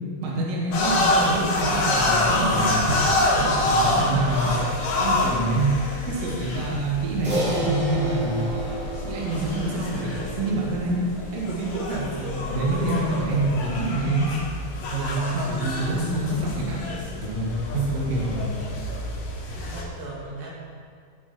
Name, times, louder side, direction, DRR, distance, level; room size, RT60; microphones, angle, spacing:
voice 1, 0.2-3.0 3.4-4.5 5.0-5.7 6.1-8.4 9.0-11.0 11.3-14.3 14.9-16.9 17.2-18.4, right 2 dB, 50° right, -5 dB, 2.7 m, -26 dB
sound 1, 0.7-19.8, left 2 dB, 80° left, 4.0 m, -27 dB
voice 2, 4.1-4.7 15.6-15.9 18.1-18.7 19.6-20.5, equal, 75° right, -5 dB, 3.6 m, -34 dB
Crash cymbal, 7.2-11.8, right 2 dB, 25° right, 2.2 m, -31 dB
17.5 x 6.0 x 4.5 m, 2.1 s
omnidirectional pair, 4.3 m